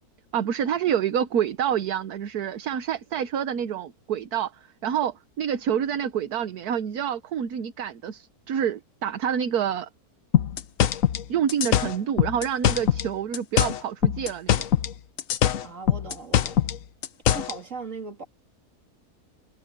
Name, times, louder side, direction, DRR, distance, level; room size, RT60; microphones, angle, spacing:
voice 1, 0.3-4.5 4.8-9.9 11.3-14.7, right 9 dB, 75° right, 1.4 m, -27 dB
sound 1, 10.3-13.1 13.3-14.9 15.2-17.6, left 10 dB, 60° left, 1.1 m, -22 dB
voice 2, 15.6-16.6 17.3-18.2, right 4 dB, 55° right, 2.9 m, -38 dB
omnidirectional pair, 1.6 m